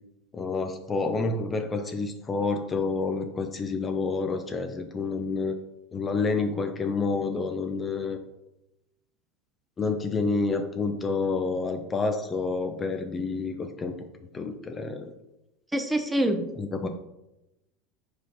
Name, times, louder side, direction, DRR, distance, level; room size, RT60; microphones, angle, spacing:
voice 1, 0.3-5.6 5.9-8.2 9.8-13.9 14.3-15.1 16.6-16.9, left 4 dB, 25° left, 6 dB, 0.6 m, -28 dB
voice 2, 15.7-16.4 16.8-16.9, right 1 dB, 5° right, 6 dB, 0.8 m, -25 dB
4.9 x 4.3 x 5.3 m, 0.91 s
supercardioid pair, 110°, 0 cm